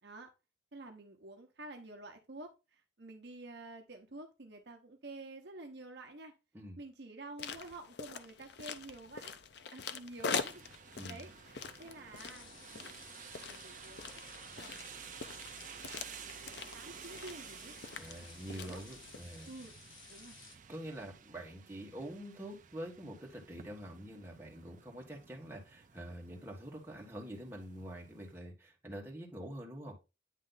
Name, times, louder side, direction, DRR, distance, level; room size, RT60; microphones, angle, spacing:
voice 1, 0.7-6.3 6.8-9.3 9.7-10.6 11.1-13.0 13.3-14.1 14.6-15.2 16.0-16.3 16.7-17.7 18.2-18.8 19.4-19.7 20.1-20.4, right 2 dB, 55° right, 4 dB, 0.8 m, -50 dB
sound 1, 7.4-19.2, left 5 dB, 55° left, 0.5 m, -44 dB
sound 2, 10.2-28.4, right 7 dB, 40° right, 0.5 m, -53 dB
sound 3, 12.1-20.6, left 5 dB, 80° left, 1.4 m, -56 dB
voice 2, 17.9-19.5 20.7-30.0, right 1 dB, 10° right, -1 dB, 1.4 m, -46 dB
9.2 x 3.2 x 3.9 m, 0.28 s
head